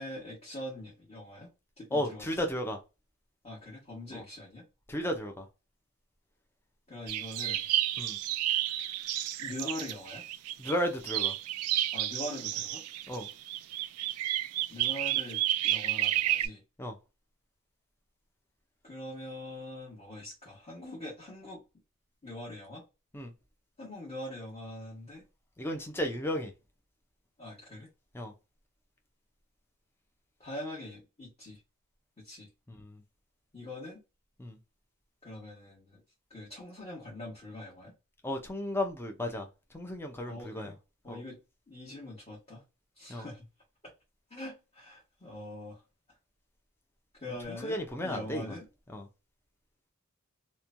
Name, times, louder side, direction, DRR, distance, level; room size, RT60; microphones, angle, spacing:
voice 1, 0.0-1.5 1.8-2.3 3.4-4.6 6.9-7.6 9.4-10.2 11.9-12.8 14.7-16.6 18.8-21.6 22.2-22.8 23.8-25.2 27.4-27.9 30.4-31.6 32.2-32.5 33.5-34.0 35.2-36.0 36.3-37.9 40.2-40.7 41.0-41.4 41.7-42.6 43.0-43.5 44.3-45.8 47.2-48.7, left 1 dB, 30° left, 1.2 m, -43 dB
voice 2, 1.9-2.8 4.1-4.2 4.9-5.5 8.0-8.2 10.6-11.3 13.1-13.3 16.8-16.9 23.1-23.3 25.6-26.5 28.1-28.3 32.7-33.0 34.4-34.6 38.2-39.5 39.7-40.7 41.1-41.2 43.1-43.3 47.5-48.6 48.9-49.1, equal, 10° left, 0.5 m, -34 dB
sound 1, 7.1-10.7 11.1-16.5, right 13 dB, 75° right, 0.3 m, -31 dB
3.0 x 2.2 x 2.5 m
head